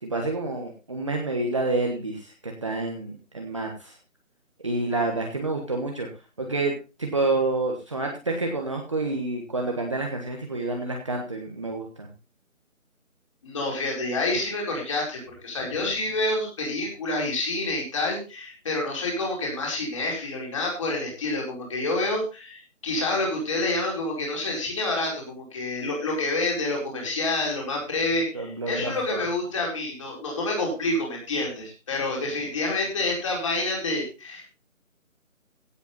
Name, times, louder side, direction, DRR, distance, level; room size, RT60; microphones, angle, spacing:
voice 1, 0.0-3.9 4.6-6.1 6.4-12.1 28.3-28.9, right 2 dB, 25° right, 1 dB, 1.3 m, -28 dB
voice 2, 13.4-34.4, left 2 dB, 25° left, -1 dB, 4.7 m, -28 dB
16.5 x 8.3 x 3.9 m, 0.31 s
figure-of-eight pair, 170°, 41 cm